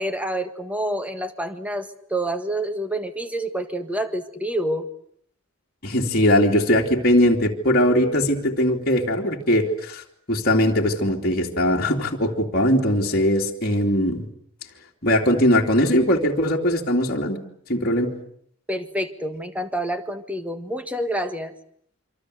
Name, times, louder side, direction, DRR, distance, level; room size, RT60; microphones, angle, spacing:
voice 1, 0.0-4.9 18.7-21.5, right 1 dB, 5° right, 8 dB, 1.6 m, -28 dB
voice 2, 5.8-10.0 10.3-14.3 15.0-17.4 17.7-18.1, left 1 dB, 40° left, -2 dB, 2.9 m, -20 dB
26.0 x 25.5 x 8.0 m, 0.67 s
head